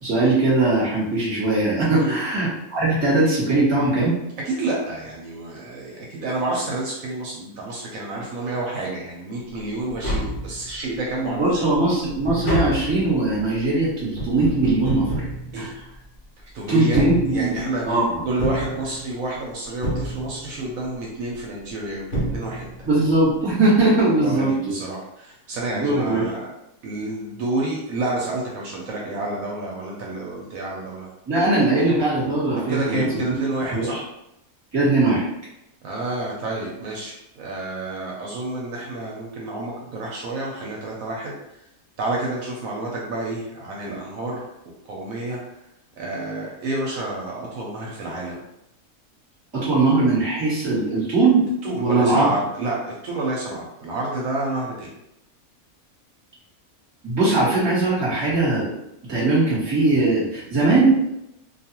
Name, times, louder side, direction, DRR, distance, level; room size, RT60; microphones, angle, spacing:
voice 1, 0.0-4.1 11.3-15.1 15.6-15.7 16.7-17.5 17.8-18.2 22.8-24.7 25.7-26.2 31.3-33.3 33.7-34.0 34.7-35.2 49.5-51.4 51.8-52.3 57.0-58.7 59.1-61.1, right 2 dB, 20° right, -8 dB, 1.0 m, -20 dB
voice 2, 1.9-2.2 4.4-11.7 15.5-15.7 16.5-22.9 24.1-26.5 26.8-31.1 32.6-34.0 35.8-41.7 42.0-44.5 44.9-45.4 46.0-48.4 51.6-54.9, right 2 dB, 75° right, -3 dB, 1.0 m, -29 dB
Tap, 9.9-11.0 11.4-16.2 16.8-17.8 18.4-19.4 19.8-20.7 21.7-21.8 22.1-23.0 23.2-23.3, right 1 dB, 55° left, 1.0 m, -29 dB
2.5 x 2.3 x 2.8 m, 0.85 s
omnidirectional pair, 1.5 m